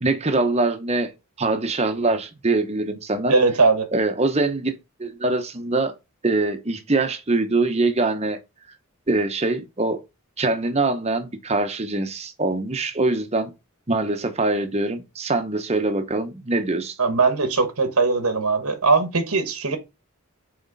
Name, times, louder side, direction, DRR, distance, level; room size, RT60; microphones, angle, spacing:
voice 1, 0.0-1.1 1.4-3.3 3.9-4.7 5.0-5.9 6.2-8.4 9.1-10.0 10.4-13.5 13.9-17.0, right 2 dB, 30° right, 0.9 m, -23 dB
voice 2, 3.3-3.9 17.0-19.8, right 3 dB, 85° right, 1.3 m, -20 dB
6.2 x 4.3 x 4.0 m
head